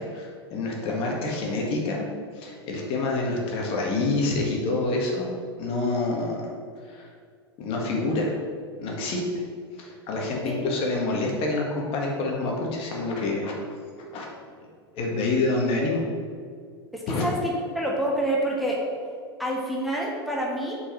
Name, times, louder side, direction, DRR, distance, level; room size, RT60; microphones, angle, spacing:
voice 1, 0.0-2.1 2.4-6.4 6.9-7.1 7.6-8.4 8.8-9.2 9.8-13.5 14.1-14.3 14.9-16.0 17.1-17.2, left 2 dB, 45° left, -1 dB, 1.8 m, -27 dB
voice 2, 16.9-18.8 19.4-20.8, right 1 dB, ahead, -3 dB, 1.4 m, -27 dB
7.2 x 4.8 x 5.9 m, 2.1 s
figure-of-eight pair, 85°, 14 cm